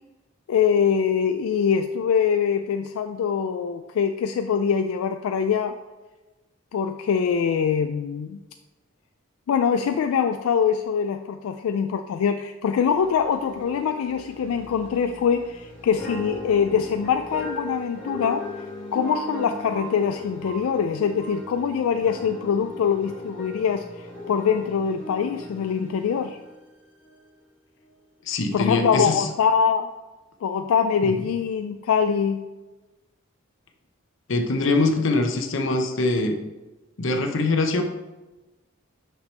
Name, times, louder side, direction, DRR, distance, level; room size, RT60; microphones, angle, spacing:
voice 1, 0.5-5.7 6.7-8.4 9.5-18.5 18.9-26.4 28.5-29.9 30.4-32.5, left 7 dB, 85° left, 7 dB, 0.3 m, -23 dB
sound 1, 12.9-26.7 27.0-27.2, equal, 5° left, 2.2 m, -38 dB
voice 2, 28.3-29.3 31.0-31.1 34.3-36.4 37.0-37.8, left 2 dB, 65° left, 5 dB, 0.8 m, -23 dB
5.9 x 5.8 x 3.3 m, 1.1 s
head